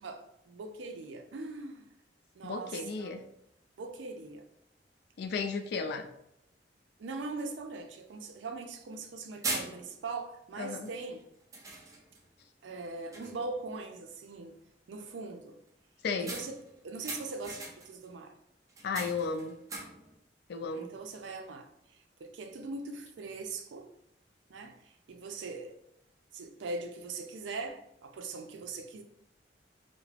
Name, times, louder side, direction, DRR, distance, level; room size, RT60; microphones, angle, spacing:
voice 1, 0.0-1.9 2.4-3.1 3.8-4.4 7.0-11.2 12.6-14.5 14.9-15.5 16.2-16.6 16.8-18.3 20.6-21.7 22.2-23.9 24.5-25.7 26.3-29.0, right 3 dB, 90° right, 0.4 m, -41 dB
voice 2, 2.4-3.2 5.2-6.1 10.6-10.9 16.0-16.4 18.8-19.6 20.5-20.9, left 4 dB, 60° left, 0.3 m, -34 dB
sound 1, 7.6-7.7 8.1-8.2 8.9-9.1 9.4-10.2 10.9-11.1 11.5-12.3 12.7-12.9 13.1-13.6 16.3-18.1 18.7-20.2, right 2 dB, 20° right, 0.3 m, -40 dB
2.3 x 2.0 x 3.2 m
head